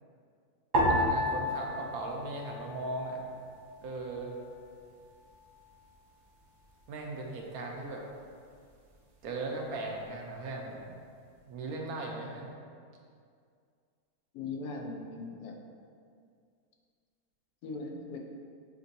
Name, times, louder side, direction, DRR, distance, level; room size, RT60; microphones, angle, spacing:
sound 1, 0.7-3.3 3.5-4.4 5.0-5.5, left 1 dB, 55° right, 0.5 m, -31 dB
voice 1, 0.9-3.2 3.8-4.3 6.9-8.0 9.2-10.8 11.5-12.5, right 2 dB, 80° right, 0 dB, 1.2 m, -38 dB
voice 2, 14.3-15.5 17.6-18.2, left 3 dB, 90° left, 1 dB, 1.1 m, -39 dB
7.3 x 2.6 x 2.6 m, 2.2 s
omnidirectional pair, 1.6 m